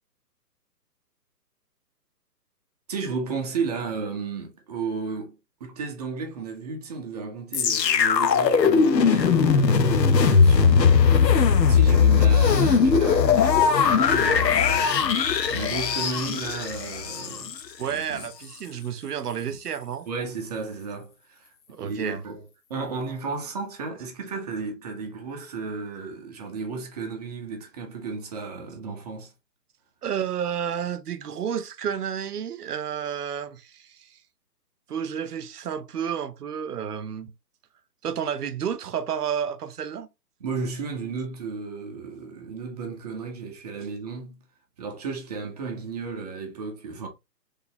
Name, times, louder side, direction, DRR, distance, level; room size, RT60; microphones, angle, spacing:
voice 1, 2.9-11.0 11.6-14.9 15.5-17.5 17.9-18.3 19.5-19.6 20.1-21.5 21.8-29.3 40.4-44.4 44.8-47.1, right 4 dB, 25° right, 0.7 m, -34 dB
sound 1, 7.5-17.6 18.2-18.3, left 6 dB, 85° left, 0.7 m, -19 dB
voice 2, 17.8-20.1 21.7-22.2 30.0-34.1 34.9-37.3 38.0-40.1, right 8 dB, 65° right, 0.7 m, -31 dB
3.8 x 3.3 x 2.7 m
figure-of-eight pair, 140°, 49 cm